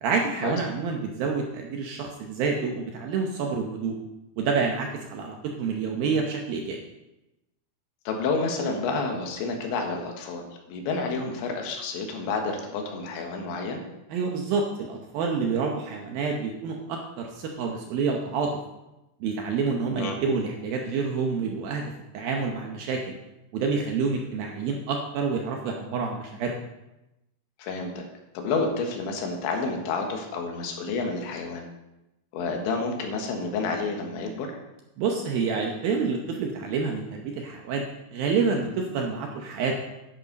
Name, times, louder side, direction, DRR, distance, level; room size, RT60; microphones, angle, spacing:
voice 1, 0.0-3.9 4.4-6.8 14.1-18.5 19.2-23.0 23.5-26.6 35.0-37.8 38.1-39.8, right 5 dB, 75° right, 1 dB, 2.3 m, -28 dB
voice 2, 8.1-13.8 20.0-20.2 27.6-28.0 28.4-31.6 32.3-34.5, left 4 dB, 85° left, 2 dB, 3.8 m, -29 dB
10.5 x 10.5 x 4.0 m, 0.94 s
omnidirectional pair, 5.2 m